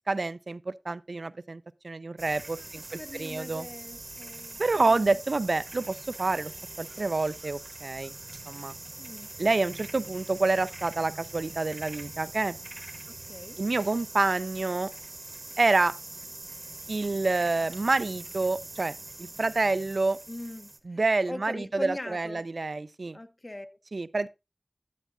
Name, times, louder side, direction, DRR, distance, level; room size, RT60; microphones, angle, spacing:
voice 1, 0.1-3.7 4.6-6.5 6.8-8.1 8.5-8.7 9.4-12.6 13.6-14.9 15.6-15.9 16.9-18.9 19.2-20.2 20.9-23.2 23.9-24.3, right 3 dB, 80° right, 0.3 m, -28 dB
sound 1, 2.2-20.8, right 2 dB, 65° right, 1.0 m, -43 dB
voice 2, 2.9-5.2 9.0-9.3 13.1-13.6 20.3-22.4 23.1-23.8, left 1 dB, 40° left, 0.7 m, -41 dB
10.0 x 8.1 x 2.5 m
wide cardioid pair, 45°, 0 cm